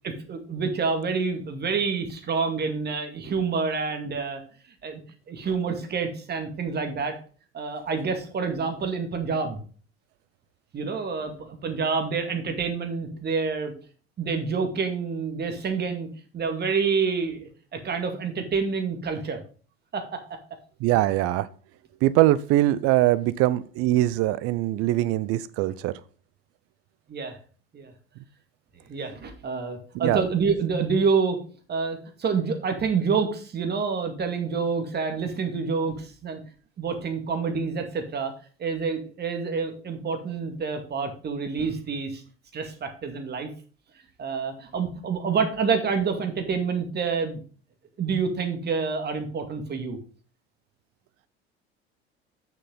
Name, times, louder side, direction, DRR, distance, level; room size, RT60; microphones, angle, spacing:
voice 1, 0.0-4.4 4.8-5.0 5.3-7.2 7.5-9.6 10.7-13.7 14.2-16.1 16.3-19.4 19.9-20.2 27.1-27.4 27.7-27.9 28.9-31.4 31.7-36.4 36.8-38.3 38.6-42.2 42.5-43.5 44.2-47.4 48.0-50.0, right 5 dB, 30° right, 2.2 m, -27 dB
voice 2, 20.8-21.5 22.0-25.9 29.9-30.2, right 15 dB, 45° right, 0.7 m, -22 dB
8.9 x 7.0 x 4.0 m
figure-of-eight pair, 70°, 32 cm